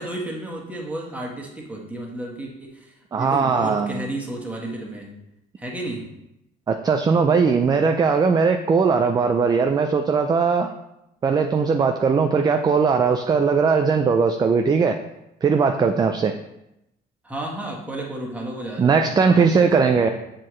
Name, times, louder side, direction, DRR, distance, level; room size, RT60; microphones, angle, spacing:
voice 1, 0.0-5.1 5.6-6.0 17.2-20.1, right 1 dB, 10° right, -2 dB, 1.4 m, -32 dB
voice 2, 3.1-4.0 6.7-10.7 11.2-15.0 15.4-16.3 18.8-20.1, right 5 dB, 25° right, 6 dB, 0.4 m, -19 dB
7.4 x 4.3 x 3.1 m, 0.86 s
cardioid pair, 110°, 17 cm